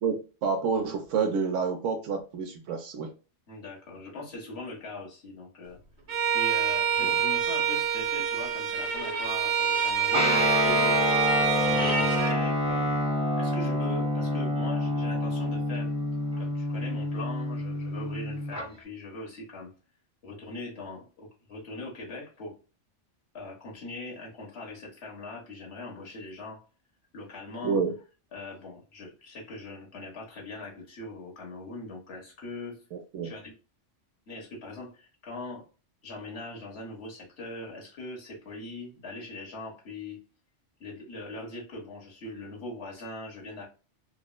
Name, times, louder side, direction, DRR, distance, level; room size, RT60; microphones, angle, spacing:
voice 1, 0.0-3.1 7.0-7.2 27.6-27.9 33.1-33.3, right 5 dB, 85° right, 0.9 m, -28 dB
voice 2, 3.5-5.8 6.3-11.1 11.6-13.0 13.3-15.9 16.4-19.7 20.2-22.6 23.3-26.6 27.1-27.8 28.3-32.8 33.2-33.5 34.3-35.6 36.0-40.2 40.8-43.6, left 2 dB, 60° left, 1.5 m, -41 dB
Bowed string instrument, 6.1-12.4, right 7 dB, 65° right, 1.1 m, -26 dB
Guitar, 10.1-18.6, left 1 dB, 5° right, 0.6 m, -27 dB
4.5 x 2.0 x 2.2 m
omnidirectional pair, 1.3 m